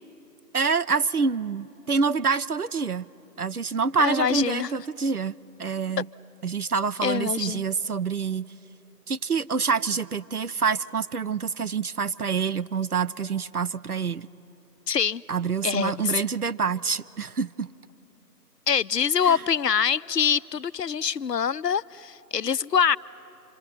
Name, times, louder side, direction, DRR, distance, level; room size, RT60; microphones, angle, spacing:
voice 1, 0.5-3.1 3.4-6.1 6.4-8.5 9.1-14.3 15.3-17.7 19.2-19.4, right 5 dB, 65° right, 0.6 m, -26 dB
voice 2, 4.0-4.7 7.0-7.6 14.9-15.2 15.6-16.1 18.7-23.0, left 7 dB, 75° left, 0.6 m, -24 dB
26.5 x 23.5 x 8.9 m
figure-of-eight pair, 180°, 49 cm